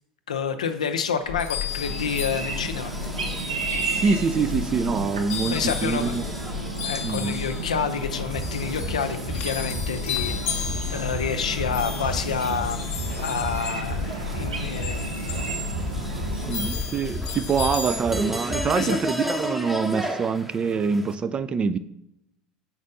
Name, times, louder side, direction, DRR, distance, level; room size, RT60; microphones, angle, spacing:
voice 1, 0.3-2.9 5.5-6.1 6.8-10.5 10.9-12.9 13.2-15.5 18.7-19.0, left 6 dB, 80° left, 8 dB, 0.5 m, -29 dB
sound 1, 1.2-18.0, left 8 dB, 55° left, 0.9 m, -33 dB
sound 2, 1.7-21.1, equal, 5° right, 0.7 m, -34 dB
sound 3, 1.8-16.7, right 4 dB, 85° right, 0.6 m, -34 dB
voice 2, 4.0-6.3 7.0-7.4 16.5-21.8, right 5 dB, 30° right, 13 dB, 0.4 m, -25 dB
4.5 x 4.2 x 5.3 m, 0.81 s
figure-of-eight pair, 75°, 4 cm